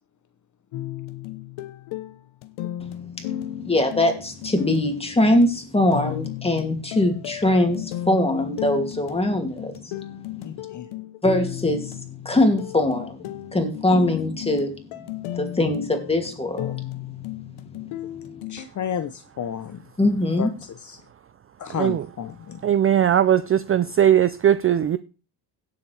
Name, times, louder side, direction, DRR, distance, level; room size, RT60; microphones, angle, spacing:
sound 1, 0.7-18.7, left 13 dB, 80° left, 1.1 m, -34 dB
voice 1, 3.6-9.8 11.2-11.9 12.2-13.2 13.5-14.7 15.4-16.8 20.0-20.5, left 1 dB, 10° left, 2.6 m, -22 dB
voice 2, 10.4-10.9 18.5-19.8 20.4-21.0 21.6-22.7, left 8 dB, 40° left, 0.8 m, -32 dB
voice 3, 22.6-25.0, right 10 dB, 30° right, 0.4 m, -19 dB
17.0 x 7.5 x 3.4 m
cardioid pair, 105°, 48 cm